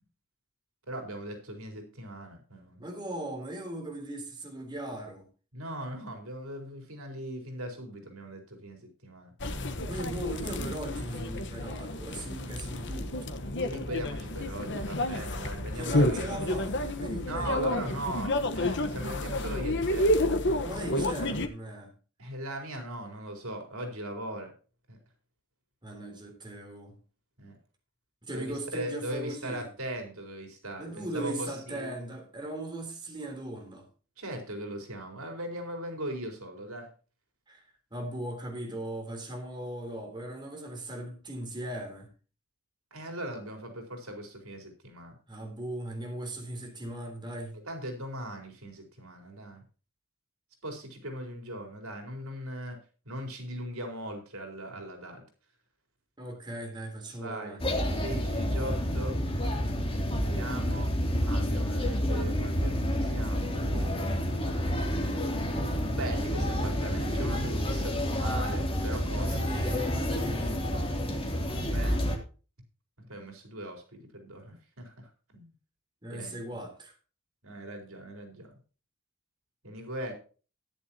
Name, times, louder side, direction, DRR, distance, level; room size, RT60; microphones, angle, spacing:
voice 1, 0.9-2.8 5.5-9.3 13.6-16.5 17.2-20.1 22.2-24.5 24.9-25.0 27.4-27.6 28.3-31.9 34.2-36.9 42.9-45.1 47.7-49.6 50.6-52.8 53.0-55.2 57.2-57.6 58.0-59.2 60.4-60.9 61.3-63.9 65.9-69.4 71.5-72.1 73.1-75.5 76.1-76.4 77.4-78.5 79.6-80.1, right 1 dB, 80° right, 4.5 m, -39 dB
voice 2, 2.8-5.3 9.9-13.4 15.7-18.0 20.5-21.9 25.8-27.0 28.2-29.7 30.8-33.9 37.5-37.6 37.9-42.1 45.3-47.6 56.2-57.7 69.2-70.7 76.0-76.9, right 1 dB, 20° right, 3.6 m, -38 dB
sound 1, 9.4-21.5, left 1 dB, 55° left, 1.3 m, -30 dB
sound 2, 57.6-72.2, equal, 25° left, 3.0 m, -29 dB
14.0 x 11.0 x 2.9 m
head